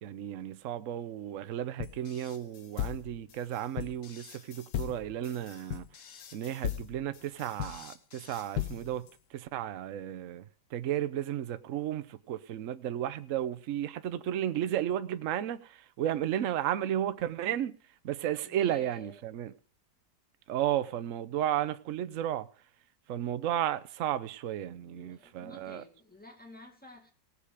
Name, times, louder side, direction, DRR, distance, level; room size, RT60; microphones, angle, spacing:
voice 1, 0.0-5.9 6.3-10.5 10.7-17.8 18.0-19.5 20.5-22.5 23.1-25.8, right 11 dB, 60° right, 0.9 m, -33 dB
sound 1, 1.8-9.1, left 11 dB, 75° left, 1.6 m, -38 dB
voice 2, 18.4-19.2 24.9-27.1, left 1 dB, 5° left, 2.1 m, -51 dB
18.0 x 6.7 x 5.0 m
omnidirectional pair, 2.0 m